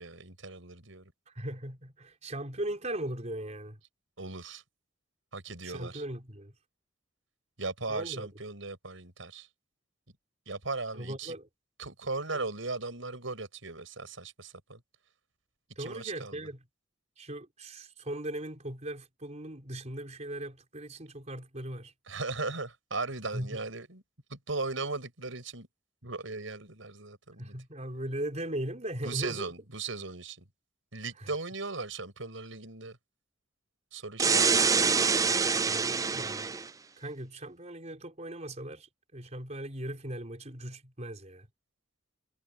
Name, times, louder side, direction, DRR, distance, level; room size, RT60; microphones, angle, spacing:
voice 1, 0.0-1.1 4.2-4.6 5.3-6.0 7.6-9.5 10.5-11.3 11.8-14.8 15.8-16.5 22.1-24.0 24.3-25.7 26.0-27.6 29.0-30.4 30.9-33.0 33.9-34.7, right 3 dB, 80° right, 5.8 m, -37 dB
voice 2, 1.3-3.8 5.6-6.5 7.9-8.3 10.9-11.5 12.3-12.4 15.8-16.6 17.2-21.9 23.3-23.6 27.4-29.5 31.2-31.3 35.7-36.5 37.0-41.5, right 1 dB, 35° right, 4.3 m, -38 dB
sound 1, 34.2-36.7, right 5 dB, 15° right, 0.4 m, -25 dB
head